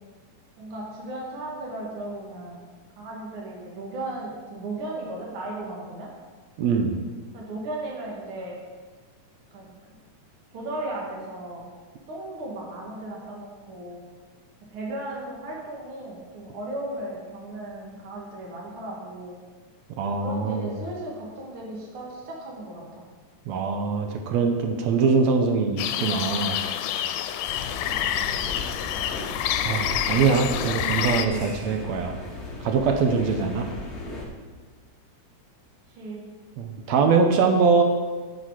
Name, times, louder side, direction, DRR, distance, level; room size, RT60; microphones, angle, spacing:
voice 1, 0.6-2.7 3.0-6.1 7.3-8.5 9.5-9.8 10.5-11.7 12.1-14.1 14.7-19.4 20.2-23.0 27.7-28.2 36.0-36.3, right 1 dB, 50° right, -3 dB, 2.2 m, -36 dB
voice 2, 6.6-7.0 20.0-20.7 23.5-26.6 29.6-32.2 32.6-33.7 36.6-37.8, right 5 dB, 70° right, 4 dB, 1.8 m, -23 dB
sound 1, 25.8-31.3, left 10 dB, 85° left, 2.0 m, -28 dB
sound 2, 27.6-34.3, left 1 dB, 55° left, 0.7 m, -37 dB
9.8 x 6.4 x 4.7 m, 1.4 s
omnidirectional pair, 3.5 m